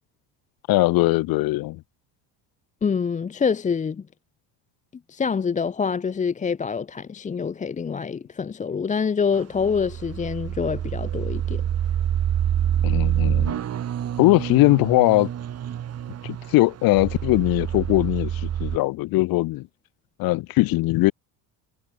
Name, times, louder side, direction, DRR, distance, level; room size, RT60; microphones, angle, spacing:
voice 1, 0.7-1.8 12.8-13.6 14.2-15.3 16.2-19.7 20.2-21.1, left 19 dB, 55° left, 1.3 m, -20 dB
voice 2, 2.8-4.0 5.1-11.6, left 6 dB, 15° left, 1.0 m, -26 dB
sound 1, 9.3-18.8, right 10 dB, 35° right, 4.5 m, -27 dB
cardioid pair, 145°, 42 cm